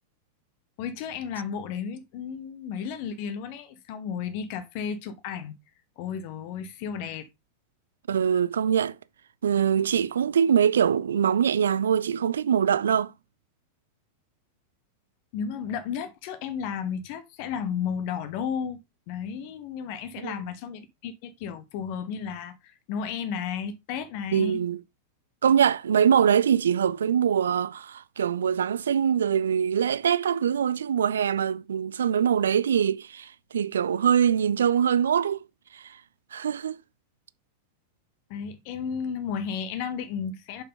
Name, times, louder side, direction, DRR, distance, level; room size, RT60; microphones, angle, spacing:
voice 1, 0.8-5.6 6.0-7.3 15.3-18.8 19.1-24.6 38.3-40.6, left 7 dB, 45° left, 0.9 m, -33 dB
voice 2, 8.1-9.0 9.4-13.1 20.2-20.3 24.3-24.8 25.4-35.4 35.7-36.0 36.3-36.8, right 8 dB, 65° right, 0.4 m, -23 dB
6.9 x 5.8 x 3.8 m
figure-of-eight pair, 90°, 0 cm